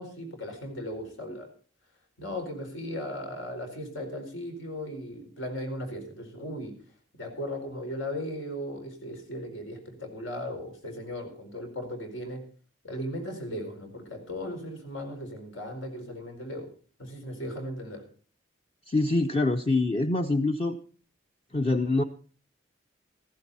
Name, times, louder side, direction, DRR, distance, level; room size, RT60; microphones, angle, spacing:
voice 1, 0.0-1.5 2.2-6.7 7.2-12.4 12.8-16.7 17.0-18.0, equal, 90° left, 4 dB, 4.6 m, -37 dB
voice 2, 18.9-20.8 21.5-22.0, left 2 dB, 30° left, 6 dB, 0.6 m, -25 dB
15.0 x 15.0 x 4.2 m, 0.42 s
head